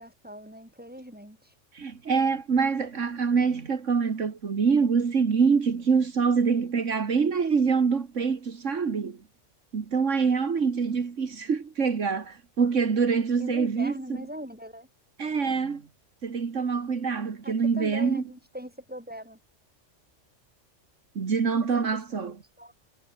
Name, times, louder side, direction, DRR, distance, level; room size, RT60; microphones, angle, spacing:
voice 1, 0.0-1.5 13.4-14.9 17.4-19.4 21.6-22.7, equal, 5° right, 7.8 m, -41 dB
voice 2, 1.7-9.2 9.7-14.2 15.2-15.8 16.2-18.2 21.2-22.3, right 5 dB, 75° right, 2.1 m, -25 dB
omnidirectional pair, 1.3 m